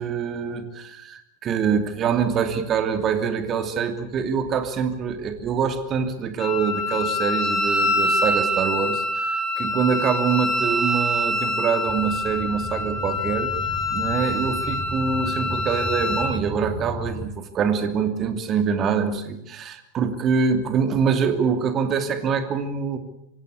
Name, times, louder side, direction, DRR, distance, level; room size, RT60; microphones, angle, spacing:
voice 1, 0.0-13.5 13.9-23.0, right 6 dB, 30° right, 8 dB, 2.7 m, -25 dB
Wind instrument woodwind instrument, 6.4-16.3, left 1 dB, 25° left, 3.5 m, -25 dB
sound 1, 11.9-17.3, equal, ahead, 5.8 m, -35 dB
25.0 x 17.0 x 8.7 m, 0.80 s
figure-of-eight pair, 90°, 0 cm